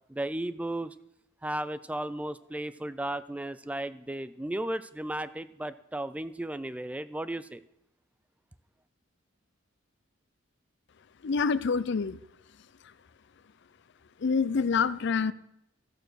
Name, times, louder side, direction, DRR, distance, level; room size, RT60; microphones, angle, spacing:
voice 1, 0.1-1.0 1.4-7.6, right 1 dB, 5° right, 14 dB, 0.3 m, -34 dB
voice 2, 11.2-12.2 14.2-15.3, left 5 dB, 60° left, 17 dB, 0.5 m, -26 dB
13.5 x 6.8 x 6.3 m, 0.79 s
head